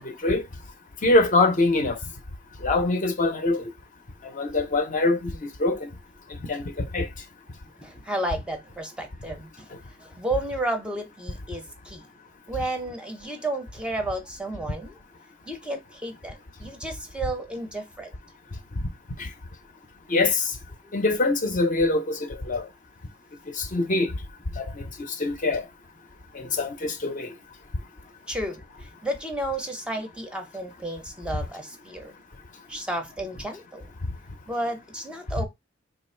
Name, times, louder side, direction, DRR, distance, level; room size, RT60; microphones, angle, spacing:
voice 1, 1.0-2.0 2.6-3.6 4.4-5.3 5.6-5.9 6.5-7.1 19.2-19.3 20.1-20.4 20.9-22.2 22.5-22.6 23.6-24.1 24.6-24.7 25.2-25.6 26.4-27.3, left 2 dB, 40° left, 0.6 m, -23 dB
voice 2, 7.8-9.7 10.0-12.1 12.5-15.0 15.5-18.1 20.8-20.9 28.3-32.1 32.7-33.9 34.5-35.4, right 1 dB, 5° right, 0.5 m, -32 dB
3.0 x 2.4 x 4.3 m
head